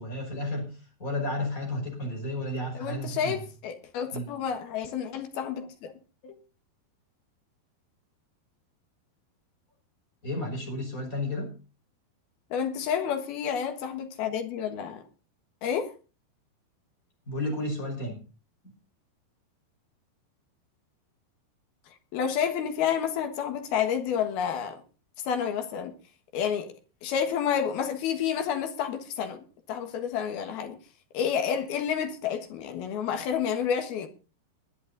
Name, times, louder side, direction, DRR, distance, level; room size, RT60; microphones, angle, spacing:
voice 1, 0.0-3.4 4.1-4.3 10.2-11.5 17.3-18.2 18.6-18.7, left 1 dB, 20° left, 5.3 m, -32 dB
voice 2, 2.7-5.9 6.2-6.4 12.5-15.0 15.6-15.9 22.1-24.8 25.2-25.9 26.3-26.7 27.0-30.8 31.1-34.1, left 8 dB, 70° left, 3.3 m, -29 dB
21.0 x 9.9 x 4.0 m
omnidirectional pair, 4.9 m